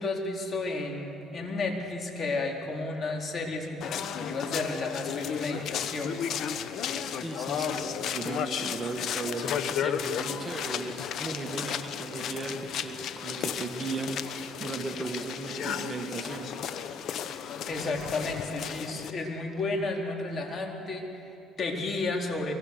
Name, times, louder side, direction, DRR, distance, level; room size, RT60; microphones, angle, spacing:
voice 1, 0.0-6.2 17.7-22.5, left 3 dB, 40° left, 1 dB, 4.0 m, -32 dB
sound 1, 3.8-19.1, left 8 dB, 60° left, 1.2 m, -34 dB
voice 2, 7.1-16.5, right 3 dB, 25° right, 4 dB, 1.9 m, -36 dB
23.5 x 23.5 x 6.7 m, 2.8 s
supercardioid pair, 90°, 0 cm